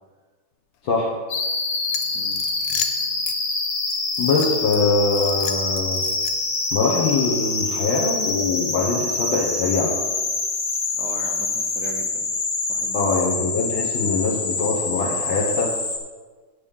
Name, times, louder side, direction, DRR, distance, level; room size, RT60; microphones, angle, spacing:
sound 1, 1.3-16.0, left 3 dB, 45° left, 1.1 m, -26 dB
sound 2, 1.9-3.4 3.9-4.8 5.1-6.6, left 9 dB, 85° left, 1.6 m, -32 dB
voice 1, 4.2-6.0 6.7-9.9 12.9-15.7, left 3 dB, 65° left, -3 dB, 1.9 m, -23 dB
voice 2, 10.9-12.3 12.7-13.1, right 5 dB, 70° right, 2 dB, 0.9 m, -38 dB
8.3 x 5.3 x 7.1 m, 1.4 s
omnidirectional pair, 2.4 m